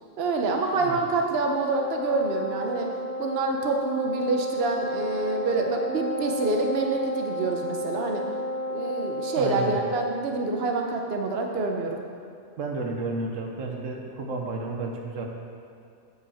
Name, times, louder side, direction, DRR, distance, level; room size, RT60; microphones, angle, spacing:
voice 1, 0.2-2.9 3.2-8.2 8.7-12.0, right 3 dB, 55° right, 2 dB, 1.0 m, -27 dB
Wind instrument woodwind instrument, 1.7-9.9, equal, 55° left, 0.6 m, -32 dB
voice 2, 9.3-9.7 12.6-15.2, right 3 dB, 90° right, 2 dB, 1.3 m, -32 dB
8.0 x 5.6 x 7.1 m, 2.5 s
omnidirectional pair, 1.3 m